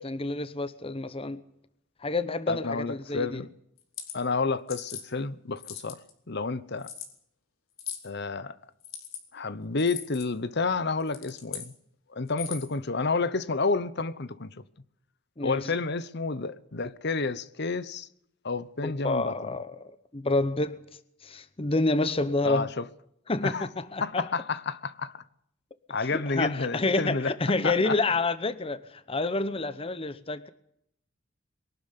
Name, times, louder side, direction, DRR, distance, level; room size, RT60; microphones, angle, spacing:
voice 1, 0.0-1.4 2.0-3.4 15.4-15.7 18.8-19.8 20.1-20.8 21.2-22.7 23.3-24.3 26.1-30.5, left 2 dB, 25° left, 0.9 m, -28 dB
voice 2, 2.5-3.5 4.1-6.0 6.3-6.9 8.0-8.5 9.3-11.7 12.1-14.5 15.4-18.1 18.4-19.5 22.4-22.8 23.4-23.6 24.0-25.2 25.9-27.3 27.6-28.0, left 4 dB, 55° left, 1.0 m, -30 dB
sound 1, 3.8-4.2 4.7-5.0 5.6-6.1 6.8-7.1 7.8-8.1 8.8-9.2 9.8-10.3 11.0-11.7 12.3-12.7, left 9 dB, 85° left, 4.4 m, -39 dB
23.0 x 12.5 x 9.9 m
head